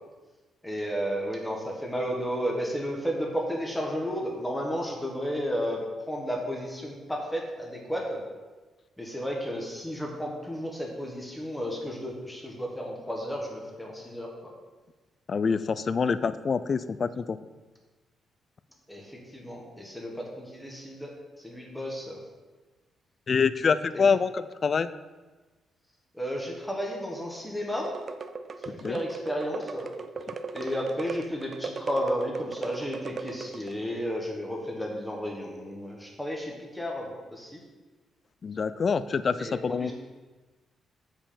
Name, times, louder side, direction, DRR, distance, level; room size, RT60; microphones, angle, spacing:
voice 1, 0.6-5.8 6.1-8.2 9.0-14.5 18.9-21.1 21.4-22.2 23.9-24.0 26.1-27.9 28.6-29.9 30.5-37.6 39.4-39.9, equal, 5° left, -1 dB, 1.2 m, -33 dB
voice 2, 15.3-17.4 23.3-24.9 28.8-29.0 38.4-39.9, left 5 dB, 40° left, 14 dB, 0.3 m, -26 dB
sound 1, 27.8-33.8, right 4 dB, 40° right, 0.4 m, -38 dB
7.4 x 5.4 x 5.0 m, 1.3 s
cardioid pair, 135°, 0 cm